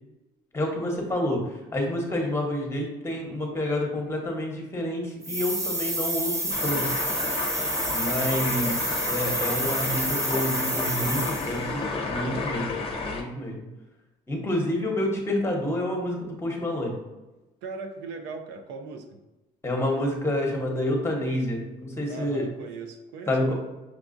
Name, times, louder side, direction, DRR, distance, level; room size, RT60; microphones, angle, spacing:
voice 1, 0.5-7.0 7.9-12.8 13.1-13.6 14.3-17.0 19.6-22.4 23.3-23.5, left 1 dB, 15° left, 1 dB, 1.0 m, -28 dB
sound 1, 5.2-11.7, right 1 dB, 20° right, 0.7 m, -29 dB
sound 2, 6.5-13.2, left 3 dB, 35° left, 0.7 m, -31 dB
voice 2, 17.6-19.2 22.1-23.5, right 4 dB, 85° right, 5 dB, 0.5 m, -38 dB
5.9 x 2.3 x 2.5 m, 1.1 s
cardioid pair, 110°, 17 cm